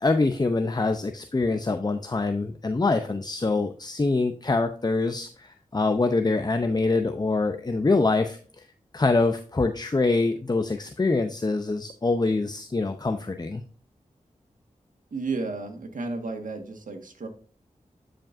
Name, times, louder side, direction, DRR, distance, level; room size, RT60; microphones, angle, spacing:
voice 1, 0.0-8.4 8.9-13.6, left 3 dB, 30° left, 7 dB, 0.7 m, -25 dB
voice 2, 15.1-17.3, right 3 dB, 75° right, 4 dB, 1.7 m, -32 dB
11.5 x 5.1 x 2.6 m, 0.39 s
cardioid pair, 45°, 14 cm